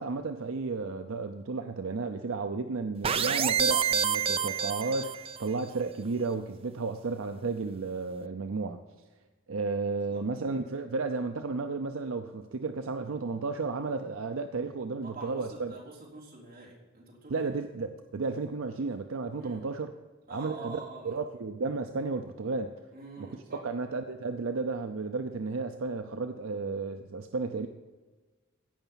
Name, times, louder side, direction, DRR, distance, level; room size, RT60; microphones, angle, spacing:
voice 1, 0.0-8.8 9.5-15.8 17.3-19.9 20.3-22.7 23.6-27.7, right 4 dB, 80° right, 7 dB, 0.6 m, -33 dB
sound 1, 3.0-5.5, right 7 dB, 30° right, 0.4 m, -28 dB
voice 2, 15.0-17.5 19.4-19.7 20.3-21.2 22.9-23.6, right 2 dB, 45° right, -4 dB, 3.7 m, -46 dB
16.0 x 5.8 x 5.7 m, 1.3 s
head